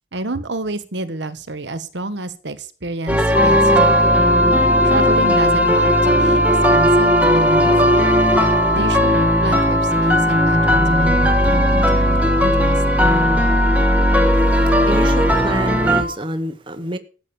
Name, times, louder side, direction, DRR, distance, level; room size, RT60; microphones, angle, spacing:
voice 1, 0.1-4.2 4.8-8.0 8.7-12.8, right 2 dB, 70° right, 1.4 m, -29 dB
sound 1, 3.1-16.0, equal, 10° right, 1.5 m, -17 dB
sound 2, 3.3-16.2, left 1 dB, 45° left, 0.9 m, -21 dB
voice 2, 14.5-17.0, right 1 dB, 25° right, 1.0 m, -27 dB
13.5 x 8.4 x 7.0 m
head